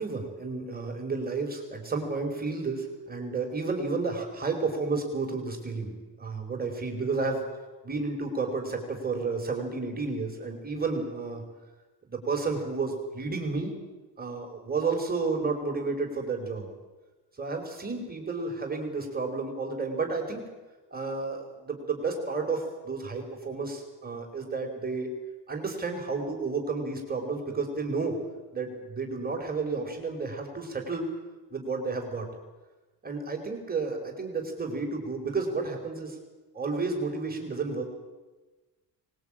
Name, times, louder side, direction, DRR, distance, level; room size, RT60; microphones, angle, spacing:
voice 1, 0.0-7.4 7.8-11.4 12.1-13.7 14.2-16.7 17.4-20.5 20.9-25.1 25.5-28.2 28.5-31.1 31.5-32.3 33.0-36.2 36.5-37.8, right 4 dB, 20° right, 2 dB, 4.2 m, -31 dB
24.0 x 20.5 x 8.7 m, 1.2 s
cardioid pair, 140°, 41 cm